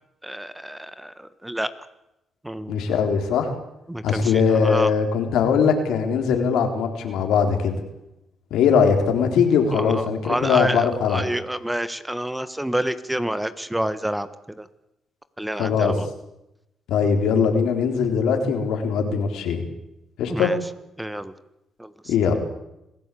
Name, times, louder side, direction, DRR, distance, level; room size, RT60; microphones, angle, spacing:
voice 1, 0.2-1.7 2.4-3.0 3.9-4.9 9.7-14.3 14.6-14.7 15.4-16.1 20.3-20.6 21.0-21.3 21.8-21.9, right 1 dB, 5° right, 13 dB, 1.3 m, -28 dB
voice 2, 2.7-3.5 4.0-7.7 8.5-11.2 15.5-16.0 16.9-19.7 20.2-20.5 22.1-22.4, left 6 dB, 85° left, 5 dB, 3.7 m, -21 dB
27.0 x 15.5 x 8.5 m, 0.90 s
cardioid pair, 90°, 0 cm